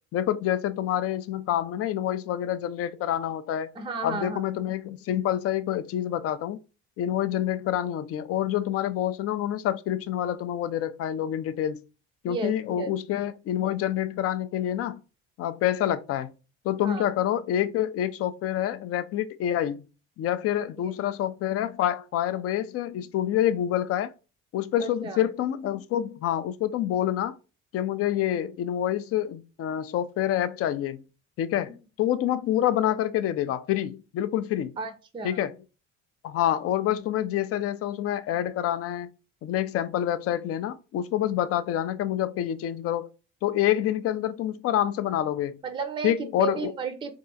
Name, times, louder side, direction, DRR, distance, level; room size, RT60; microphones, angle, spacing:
voice 1, 0.1-3.7 4.0-6.6 7.0-11.8 12.2-15.0 15.4-16.3 16.6-19.8 20.2-24.1 24.5-27.4 27.7-31.0 31.4-31.7 32.0-34.7 35.2-35.5 36.2-39.1 39.4-43.1 43.4-45.6 46.0-46.7, left 11 dB, 40° left, 0.4 m, -27 dB
voice 2, 3.7-4.4 12.3-12.9 16.8-17.1 20.8-21.0 24.8-25.3 34.8-35.4 45.6-47.1, right 5 dB, 15° right, 0.5 m, -33 dB
3.5 x 2.3 x 2.6 m
hypercardioid pair, 55°, 36 cm